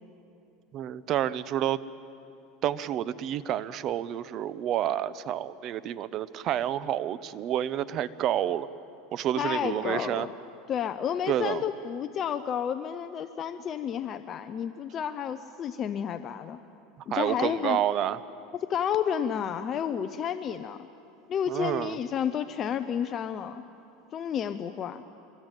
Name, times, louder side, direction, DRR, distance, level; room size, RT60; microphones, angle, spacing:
voice 1, 0.7-1.8 2.6-8.7 9.1-10.3 11.3-11.6 17.1-18.2 21.5-22.0, right 11 dB, 40° right, 17 dB, 0.7 m, -29 dB
voice 2, 9.4-10.3 10.7-16.6 17.1-17.8 18.5-20.9 21.3-23.6 24.1-25.0, left 8 dB, 35° left, 10 dB, 0.7 m, -31 dB
26.0 x 22.0 x 9.1 m, 2.7 s
supercardioid pair, 140°, 0 cm